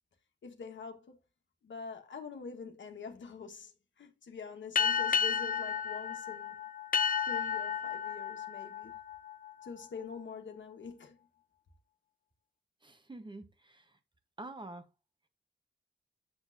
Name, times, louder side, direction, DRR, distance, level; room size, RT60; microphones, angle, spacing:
voice 1, 0.4-1.2 1.6-6.6 7.2-9.0 9.6-11.2, left 5 dB, 90° left, 1.4 m, -45 dB
sound 1, 4.7-9.8, left 7 dB, 50° left, 0.5 m, -32 dB
voice 2, 12.8-13.8 14.4-14.8, right 2 dB, 25° right, 1.1 m, -46 dB
7.1 x 6.3 x 2.7 m
wide cardioid pair, 85°, 19 cm